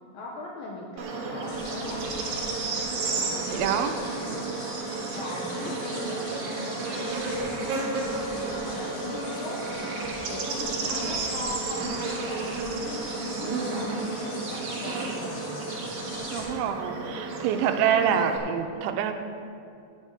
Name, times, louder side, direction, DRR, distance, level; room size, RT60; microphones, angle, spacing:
voice 1, 0.1-2.1 3.1-4.5 5.1-7.7 8.3-10.0 10.3-15.4 15.9-16.3, left 2 dB, 80° left, -2 dB, 2.0 m, -39 dB
Bird / Insect, 1.0-18.4, right 3 dB, 70° right, 1.9 m, -32 dB
sound 1, 1.4-16.5, left 2 dB, 60° left, 3.1 m, -43 dB
voice 2, 3.5-3.9 16.3-19.1, right 8 dB, 85° right, 6 dB, 3.0 m, -26 dB
sound 2, 6.8-8.2, equal, 35° left, 2.4 m, -48 dB
10.5 x 5.5 x 7.9 m, 2.5 s
omnidirectional pair, 5.2 m